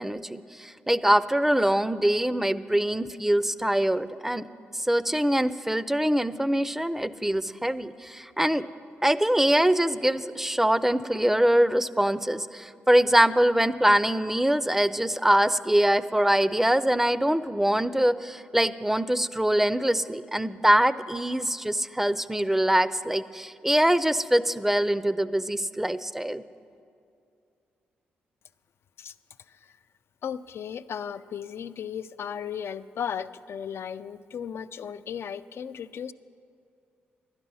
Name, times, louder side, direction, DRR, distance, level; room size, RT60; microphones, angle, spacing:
voice 1, 0.0-4.5 4.7-8.7 9.0-26.4, right 1 dB, 5° right, 15 dB, 0.5 m, -23 dB
voice 2, 30.2-36.1, left 8 dB, 60° left, 14 dB, 0.4 m, -35 dB
11.5 x 10.5 x 5.5 m, 2.5 s
supercardioid pair, 45°, 5 cm